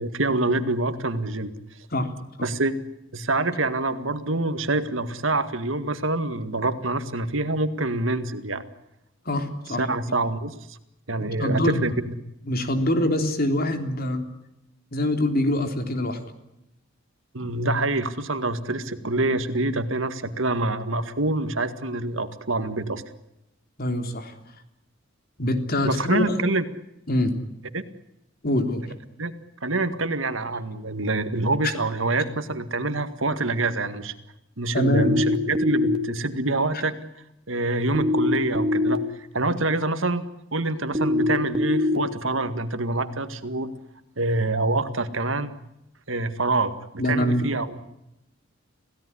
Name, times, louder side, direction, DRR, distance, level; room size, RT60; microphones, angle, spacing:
voice 1, 0.0-1.5 2.4-2.8 3.1-8.6 9.7-10.8 11.1-12.1 17.3-23.0 25.8-26.7 27.7-27.8 29.2-29.3 29.6-34.1 34.6-37.0 37.5-40.3 40.5-43.7 44.2-45.5 46.1-47.8, right 2 dB, 70° right, 10 dB, 2.0 m, -26 dB
voice 2, 9.3-9.8 11.4-11.8 12.4-14.2 14.9-16.2 23.8-24.3 25.4-26.4 27.1-27.4 28.4-28.8 34.7-35.1 47.0-47.5, left 1 dB, 50° left, 7 dB, 3.6 m, -24 dB
sound 1, 35.0-36.0 37.9-39.0 40.9-42.0, left 2 dB, 25° right, 2.4 m, -22 dB
27.5 x 17.0 x 9.9 m, 0.86 s
head